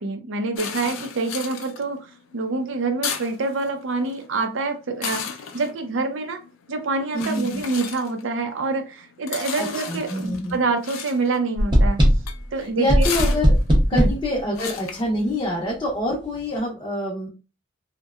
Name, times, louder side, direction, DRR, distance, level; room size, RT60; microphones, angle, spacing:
voice 1, 0.0-2.0 2.3-5.2 5.5-6.4 6.7-12.0 12.5-13.1 13.9-14.1, right 3 dB, 65° right, 6 dB, 0.5 m, -26 dB
sound 1, 0.6-15.7, left 7 dB, 80° left, 0.4 m, -35 dB
voice 2, 7.1-7.6 9.6-10.6 12.6-13.5 13.9-17.3, left 1 dB, 25° left, -3 dB, 0.6 m, -26 dB
sound 2, 11.6-12.4 12.9-14.3, equal, 25° right, 0.6 m, -17 dB
2.7 x 2.1 x 2.3 m, 0.31 s
head